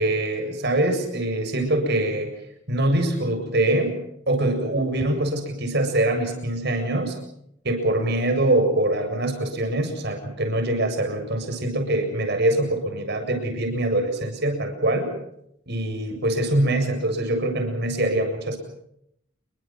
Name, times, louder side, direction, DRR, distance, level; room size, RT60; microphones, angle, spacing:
voice 1, 0.0-2.3 2.7-3.9 4.3-7.2 7.6-15.1 15.7-18.6, right 1 dB, 50° right, 5 dB, 7.5 m, -23 dB
29.0 x 23.0 x 6.2 m, 0.76 s
head